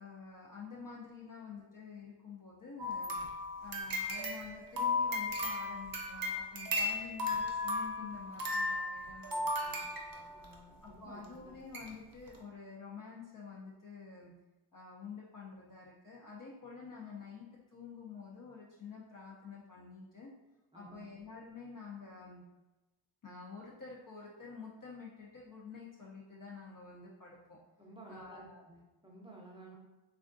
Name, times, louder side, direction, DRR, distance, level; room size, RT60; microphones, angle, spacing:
voice 1, 0.0-3.2 3.6-9.8 10.1-10.3 10.8-14.3 14.7-20.3 20.7-22.4 23.2-27.6 28.1-28.6, left 5 dB, 45° left, -5 dB, 0.5 m, -49 dB
sound 1, 2.8-10.6 11.2-11.3 11.7-11.9 12.3-12.4, left 2 dB, 50° right, 0.6 m, -36 dB
voice 2, 10.3-11.6 20.7-21.1 27.8-29.8, right 2 dB, 10° right, -2 dB, 0.6 m, -54 dB
3.4 x 2.3 x 2.5 m, 1.1 s
wide cardioid pair, 85°, 47 cm